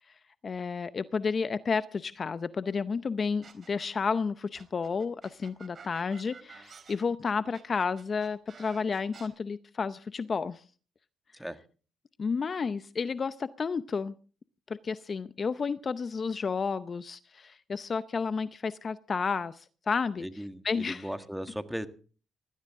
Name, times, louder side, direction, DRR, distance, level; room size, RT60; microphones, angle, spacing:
voice 1, 0.4-10.6 12.2-14.2 14.7-20.2 20.6-21.1, left 5 dB, 40° left, 14 dB, 0.6 m, -31 dB
sound 1, 3.4-4.1 4.5-9.3, right 5 dB, 45° right, 3.5 m, -51 dB
voice 2, 20.2-21.9, equal, 5° right, 9 dB, 1.7 m, -37 dB
19.5 x 15.0 x 3.7 m, 0.39 s
cardioid pair, 90°, 0 cm